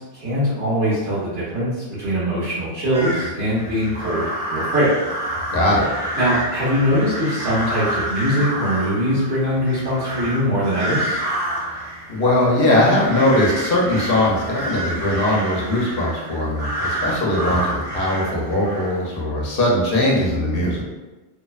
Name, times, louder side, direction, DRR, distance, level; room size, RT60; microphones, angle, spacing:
voice 1, 0.0-4.2 4.5-4.9 6.2-11.2, equal, 75° right, -11 dB, 1.1 m, -22 dB
sound 1, 2.9-19.2, right 1 dB, 50° right, 0.6 m, -29 dB
voice 2, 5.5-5.9 12.1-20.8, left 1 dB, 60° left, -4 dB, 0.8 m, -20 dB
2.6 x 2.1 x 2.3 m, 1.1 s
omnidirectional pair, 1.2 m